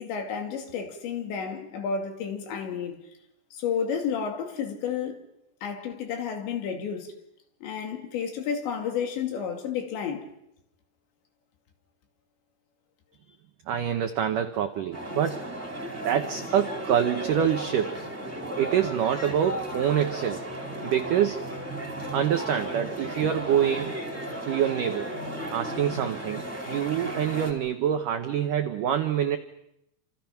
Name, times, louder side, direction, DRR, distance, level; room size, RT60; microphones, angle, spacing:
voice 1, 0.0-3.0 3.5-5.2 5.6-7.1 7.6-10.3, left 7 dB, 70° left, 4.7 m, -31 dB
voice 2, 13.7-15.5 16.0-18.0 18.6-20.5 20.8-21.4 22.1-23.9 24.4-25.1 25.5-29.4, right 9 dB, 85° right, 1.9 m, -26 dB
sound 1, 14.9-27.5, right 1 dB, 5° right, 3.4 m, -35 dB
28.5 x 27.0 x 5.9 m
omnidirectional pair, 5.3 m